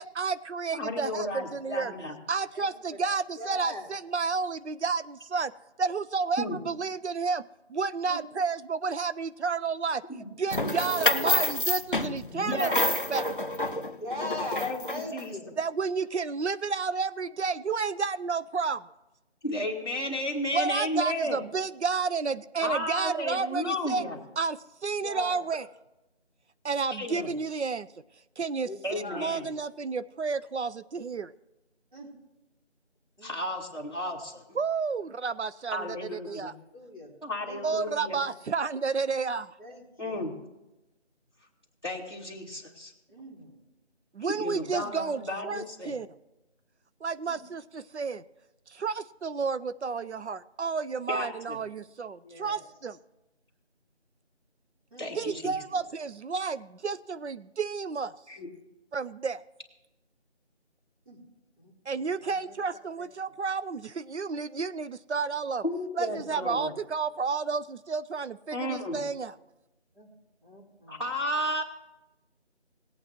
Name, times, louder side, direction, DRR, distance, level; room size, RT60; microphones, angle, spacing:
voice 1, 0.0-1.9 2.3-5.5 5.8-10.0 10.4-12.7 13.1-13.5 15.6-18.8 20.5-24.0 24.4-25.6 26.6-27.9 28.4-28.7 29.1-31.3 34.6-36.5 37.6-39.5 44.1-46.1 47.0-48.2 48.7-53.0 55.1-58.1 58.9-59.4 61.9-65.6 65.9-69.3, right 5 dB, 70° right, 14 dB, 0.5 m, -31 dB
voice 2, 0.7-2.2 6.4-6.6 10.1-10.3 12.3-12.8 14.6-14.8 15.1-15.3 19.4-21.4 22.6-24.2 26.9-27.3 28.8-29.4 33.2-34.6 35.7-36.5 37.2-38.2 40.0-40.3 41.8-42.9 44.3-45.9 51.1-51.6 55.0-55.6 58.3-58.5 65.6-66.7 68.5-69.0 70.9-71.6, left 1 dB, 20° left, -6 dB, 1.6 m, -33 dB
voice 3, 3.4-3.9 8.0-8.2 10.6-10.8 13.6-15.6 25.0-25.4 28.6-29.4 31.9-32.1 33.2-33.4 33.6-33.7 36.3-36.4 36.7-37.2 37.4-37.7 39.6-40.3 43.1-43.6 47.3-47.4 52.2-52.6 54.9-55.1 55.4-55.5 61.1-61.2 61.6-62.6 63.0-63.1 69.9-70.1 70.4-71.1, left 1 dB, 45° right, -6 dB, 3.8 m, -41 dB
sound 1, 10.5-15.2, left 1 dB, 50° left, 0.5 m, -28 dB
19.0 x 8.5 x 3.0 m, 0.98 s
figure-of-eight pair, 175°, 35 cm